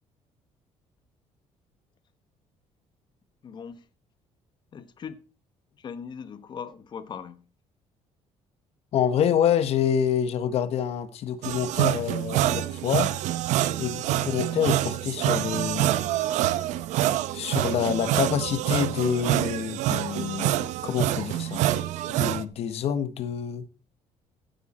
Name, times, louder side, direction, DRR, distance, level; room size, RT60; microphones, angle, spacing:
voice 1, 3.4-3.9 4.7-5.2 5.8-7.4 13.8-14.0, left 7 dB, 40° left, 1.2 m, -40 dB
voice 2, 8.9-13.2 13.8-16.0 17.3-21.6 22.1-23.6, left 8 dB, 60° left, 1.2 m, -27 dB
sound 1, 11.4-22.4, right 13 dB, 80° right, 0.9 m, -26 dB
15.0 x 9.4 x 4.3 m
cardioid pair, 135°, 12 cm